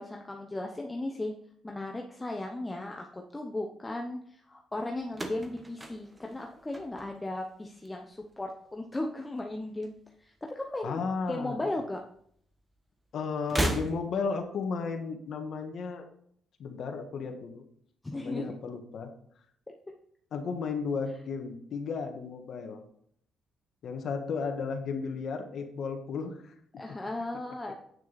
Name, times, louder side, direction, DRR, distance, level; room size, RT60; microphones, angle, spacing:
voice 1, 0.0-1.3 1.6-11.0 11.3-12.0 18.0-18.5 26.8-27.7, left 2 dB, 15° left, 2 dB, 0.9 m, -36 dB
sound 1, 5.1-7.4 7.7-8.3 9.4-10.4 10.7-10.8 11.9-12.0 13.4-14.4, right 1 dB, 20° right, 1.2 m, -35 dB
voice 2, 10.8-11.6 13.1-16.0 16.6-17.6 18.1-19.1 20.3-22.8 23.8-26.5, left 5 dB, 65° left, 4 dB, 1.5 m, -34 dB
9.1 x 6.4 x 4.2 m, 0.65 s
cardioid pair, 90°, 0 cm